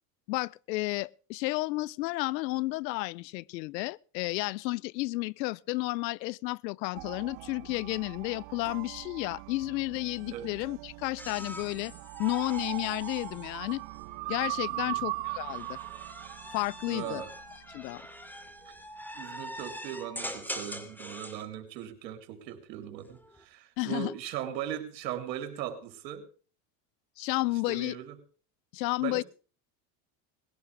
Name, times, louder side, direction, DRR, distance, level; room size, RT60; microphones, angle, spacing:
voice 1, 0.3-11.9 12.2-13.8 14.3-15.8 16.5-17.2 17.7-18.0 23.8-24.1 27.2-28.0 28.7-29.2, left 21 dB, 85° left, 0.7 m, -32 dB
sound 1, 6.9-18.0, right 22 dB, 60° right, 0.8 m, -40 dB
sound 2, 11.2-14.4 15.2-21.5 22.9-23.4, equal, 5° left, 2.7 m, -43 dB
voice 2, 14.7-15.0 16.9-17.3 19.1-26.3 27.7-28.2 29.0-29.2, right 10 dB, 85° right, 3.6 m, -39 dB
20.0 x 16.5 x 3.4 m
supercardioid pair, 95°, 49 cm